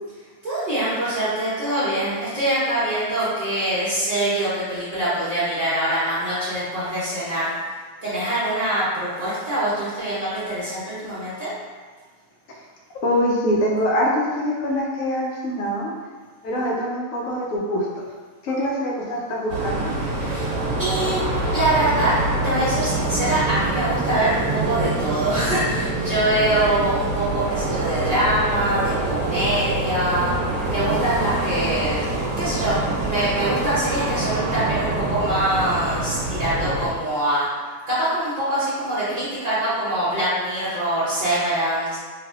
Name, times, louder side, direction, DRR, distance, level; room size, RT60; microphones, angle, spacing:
voice 1, 0.4-7.5 8.0-11.5 20.2-20.5 20.8-21.2 21.5-22.1 22.4-37.5 37.9-42.0, right 1 dB, 35° right, -13 dB, 0.8 m, -24 dB
voice 2, 13.0-15.9 16.4-17.8 18.4-19.9, equal, 70° left, -4 dB, 1.0 m, -24 dB
sound 1, 19.5-36.9, right 2 dB, 75° right, 1.1 m, -25 dB
3.3 x 2.6 x 2.4 m, 1.5 s
omnidirectional pair, 1.6 m